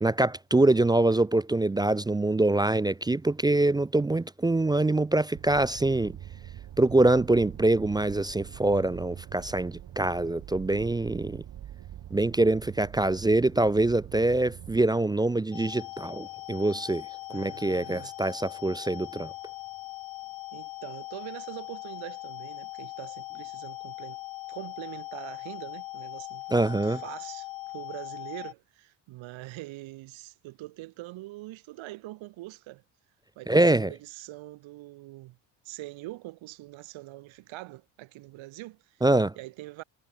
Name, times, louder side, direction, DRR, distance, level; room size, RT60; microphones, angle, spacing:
voice 1, 0.0-6.2 6.8-11.4 12.1-17.0 17.3-19.3 26.5-27.0 33.5-33.9 39.0-39.3, right 2 dB, 10° right, 0.3 m, -24 dB
sound 1, 5.3-14.9, right 11 dB, 55° right, 3.8 m, -44 dB
sound 2, 15.5-28.5, left 19 dB, 90° left, 2.9 m, -40 dB
voice 2, 17.3-18.1 20.5-24.2 24.5-27.5 27.7-32.8 33.4-35.4 35.6-39.0 39.4-39.8, right 18 dB, 90° right, 5.7 m, -43 dB
cardioid pair, 130°, 46 cm